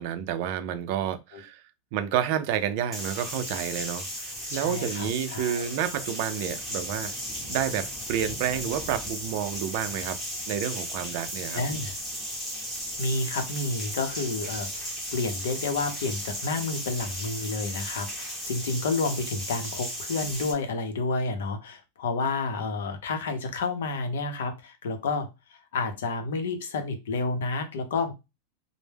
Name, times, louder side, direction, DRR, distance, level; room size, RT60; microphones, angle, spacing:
voice 1, 0.0-1.6 1.9-4.1 4.5-7.1 7.5-10.2 10.5-11.6, right 10 dB, 50° right, 0.4 m, -29 dB
sound 1, 2.9-20.5, equal, ahead, 0.8 m, -35 dB
voice 2, 4.5-5.7 11.5-11.9 13.0-28.1, left 3 dB, 85° left, 0.6 m, -30 dB
2.1 x 2.0 x 3.2 m
supercardioid pair, 155°, 0 cm